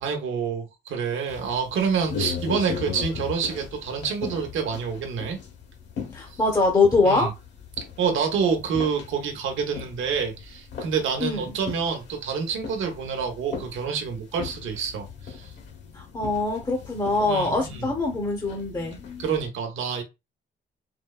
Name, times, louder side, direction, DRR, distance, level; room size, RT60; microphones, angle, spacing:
voice 1, 0.0-5.4 6.3-6.4 7.0-7.3 8.0-15.5 17.3-17.9 19.2-20.0, right 6 dB, 80° right, 1.0 m, -27 dB
sound 1, 1.3-19.5, left 6 dB, 65° left, 1.5 m, -39 dB
voice 2, 6.1-7.3 11.2-11.5 15.9-19.0, left 3 dB, 20° left, 0.9 m, -23 dB
4.4 x 2.1 x 2.3 m
cardioid pair, 90°, 20 cm